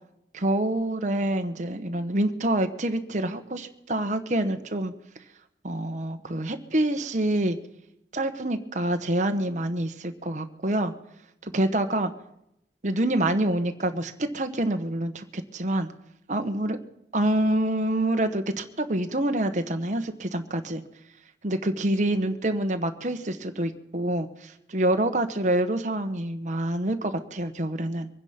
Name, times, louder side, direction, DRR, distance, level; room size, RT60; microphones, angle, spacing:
voice 1, 0.3-4.9 5.6-7.6 8.1-10.9 11.4-12.1 12.8-15.9 16.3-16.8 17.1-20.8 21.4-28.1, right 1 dB, 45° right, 7 dB, 1.2 m, -26 dB
23.5 x 9.9 x 5.9 m, 0.80 s
head